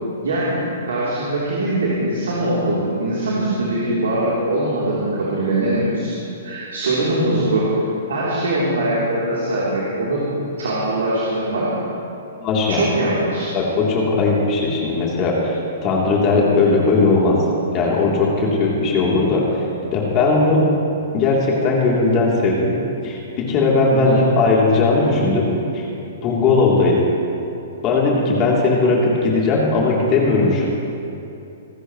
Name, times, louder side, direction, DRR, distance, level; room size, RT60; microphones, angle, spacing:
voice 1, 0.2-0.6 0.9-6.2 6.4-7.7 8.1-10.2 10.6-11.7 12.7-13.5 23.9-24.2, right 1 dB, 70° right, -7 dB, 3.3 m, -22 dB
voice 2, 12.4-12.8 13.5-17.4 17.7-19.4 19.9-20.6 21.1-22.7 23.0-25.8 26.2-27.0 27.8-30.7, left 3 dB, 30° left, -4 dB, 3.2 m, -18 dB
25.5 x 13.5 x 3.2 m, 2.8 s
figure-of-eight pair, 115°, 0 cm